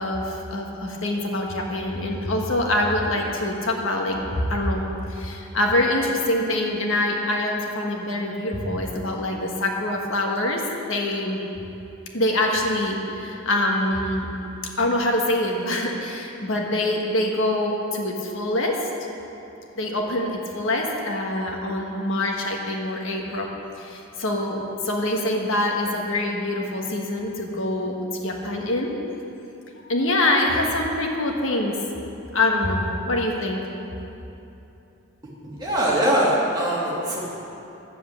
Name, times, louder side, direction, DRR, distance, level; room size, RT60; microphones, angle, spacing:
voice 1, 0.0-4.8 5.1-11.4 12.1-14.3 14.8-18.9 19.8-23.5 23.8-28.9 29.8-31.8 32.3-33.6, left 1 dB, 65° left, 1 dB, 1.4 m, -25 dB
voice 2, 35.4-37.2, right 1 dB, 20° right, -6 dB, 2.5 m, -22 dB
11.5 x 7.7 x 8.4 m, 2.9 s
head